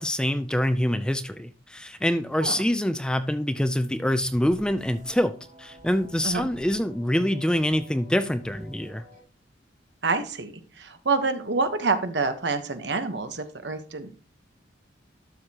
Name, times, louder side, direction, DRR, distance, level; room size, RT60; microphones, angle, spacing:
voice 1, 0.0-9.0, equal, 5° left, 11 dB, 0.4 m, -25 dB
sound 1, 4.2-9.2, equal, 40° right, 4.2 m, -49 dB
voice 2, 10.0-14.1, right 4 dB, 65° right, 9 dB, 1.1 m, -27 dB
12.0 x 6.5 x 2.9 m, 0.37 s
head